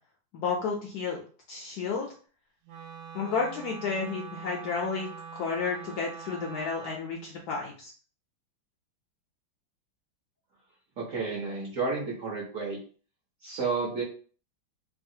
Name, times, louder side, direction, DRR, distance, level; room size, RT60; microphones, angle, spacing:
voice 1, 0.3-1.2 1.5-2.1 3.1-7.9, left 5 dB, 75° left, -1 dB, 0.9 m, -32 dB
Wind instrument woodwind instrument, 2.6-7.0, right 6 dB, 75° right, 1.2 m, -44 dB
voice 2, 11.0-12.8 13.4-14.0, right 4 dB, 60° right, -4 dB, 0.9 m, -31 dB
3.1 x 2.3 x 2.7 m, 0.41 s
omnidirectional pair, 2.1 m